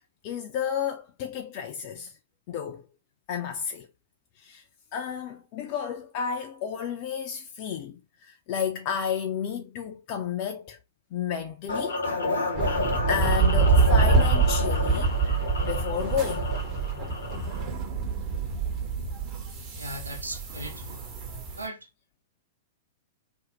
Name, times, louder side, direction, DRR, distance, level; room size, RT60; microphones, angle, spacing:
voice 1, 0.2-2.1 2.5-2.9 3.3-3.9 4.4-4.6 4.9-10.8 11.1-12.0 12.7-12.8 13.1-15.1 15.6-16.5, left 7 dB, 40° left, 0.4 m, -32 dB
sound 1, 11.7-17.6, left 3 dB, 75° left, 0.7 m, -31 dB
sound 2, 12.5-21.7, right 4 dB, 35° right, 0.8 m, -26 dB
voice 2, 19.8-21.1 21.6-21.9, right 1 dB, 85° right, 0.4 m, -38 dB
2.6 x 2.0 x 2.8 m
figure-of-eight pair, 105°, 0 cm